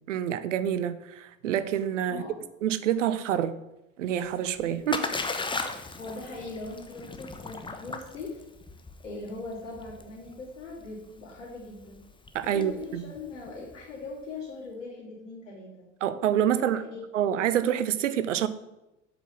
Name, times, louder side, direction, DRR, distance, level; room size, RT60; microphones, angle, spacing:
voice 1, 0.1-2.2 2.6-3.5 4.0-5.1 12.3-13.1 16.0-16.8 17.1-18.5, right 10 dB, 75° right, 14 dB, 0.8 m, -27 dB
Splash splatter, 4.2-14.1, left 3 dB, 15° left, 1.1 m, -37 dB
voice 2, 6.0-8.4 9.0-12.0 12.5-15.9 16.4-17.0, left 3 dB, 80° left, -8 dB, 3.4 m, -40 dB
8.1 x 6.1 x 7.1 m, 0.93 s
figure-of-eight pair, 70°, 37 cm